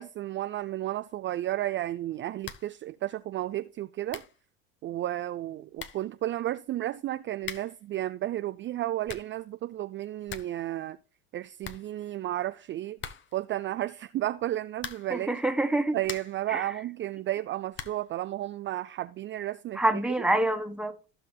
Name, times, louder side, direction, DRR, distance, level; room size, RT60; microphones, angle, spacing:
voice 1, 0.0-4.2 4.8-11.0 11.3-13.0 13.3-15.4 15.9-20.2, right 14 dB, 35° right, 0.4 m, -33 dB
sound 1, 2.4-2.8 3.1-3.2 3.8-3.9 4.1-4.4 5.4-5.5 5.8-6.1 7.4-7.9 8.8-9.4 9.8-9.9 10.1-10.6 10.9-11.0 11.3-11.4 11.6-12.4 13.0-13.5 14.7-15.2 15.7-16.5 17.7-18.1, left 7 dB, 35° left, 1.0 m, -42 dB
voice 2, 15.1-16.0 16.5-16.7 19.8-20.9, right 1 dB, 5° right, 1.5 m, -26 dB
15.0 x 5.9 x 2.2 m
hypercardioid pair, 80°, 32 cm